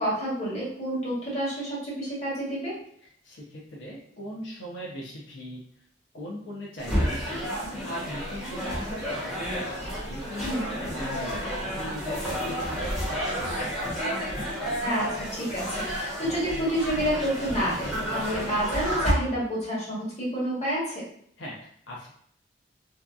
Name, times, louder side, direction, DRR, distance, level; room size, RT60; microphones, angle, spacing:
voice 1, 0.0-2.7 10.4-10.6 14.8-21.0, equal, 40° left, -8 dB, 1.3 m, -29 dB
voice 2, 3.0-5.6 6.1-7.5 7.8-9.7 10.0-14.0 21.4-22.1, equal, 85° left, -4 dB, 0.6 m, -40 dB
sound 1, 6.8-19.1, equal, ahead, 0.9 m, -31 dB
2.7 x 2.2 x 2.4 m, 0.64 s
head